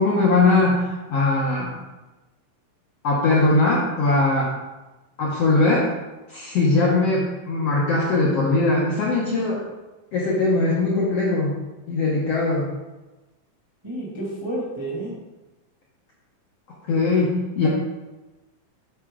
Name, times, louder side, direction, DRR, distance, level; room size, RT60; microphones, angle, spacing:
voice 1, 0.0-1.7 3.0-4.5 5.2-5.9 6.3-9.6 10.1-11.6 11.9-12.7 16.9-17.7, left 3 dB, 70° left, -5 dB, 1.5 m, -20 dB
voice 2, 13.8-15.1, right 1 dB, 15° right, -5 dB, 0.9 m, -30 dB
10.0 x 4.3 x 3.7 m, 1.1 s
omnidirectional pair, 4.0 m